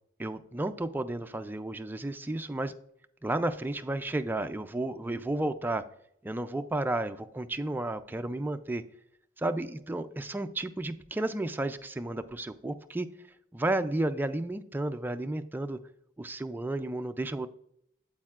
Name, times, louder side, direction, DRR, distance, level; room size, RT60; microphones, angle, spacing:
voice 1, 0.2-2.7 3.2-5.8 6.2-8.8 9.4-13.1 13.5-15.8 16.2-17.5, right 2 dB, 10° right, 8 dB, 0.3 m, -32 dB
8.7 x 7.9 x 2.4 m, 0.73 s
head